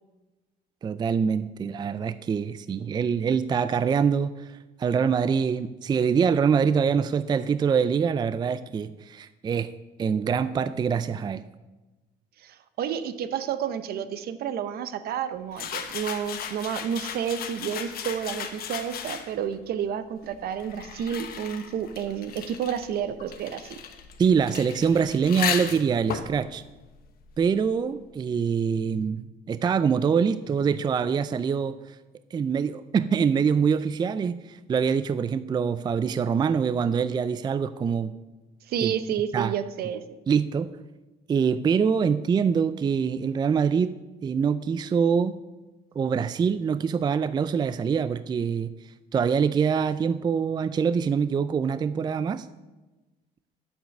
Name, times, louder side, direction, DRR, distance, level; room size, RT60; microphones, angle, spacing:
voice 1, 0.8-9.7 10.0-11.4 24.2-26.6 27.4-31.8 32.3-38.1 38.8-38.9 39.3-39.5 40.3-40.7 41.3-45.4 46.0-48.7 49.1-52.5, right 6 dB, 25° right, 14 dB, 0.3 m, -24 dB
voice 2, 12.4-23.8 38.7-40.0, right 8 dB, 65° right, 12 dB, 0.8 m, -30 dB
sound 1, 15.5-19.5 20.3-27.7, left 8 dB, 65° left, 1.1 m, -36 dB
9.2 x 7.4 x 6.5 m, 1.1 s
cardioid pair, 110°, 17 cm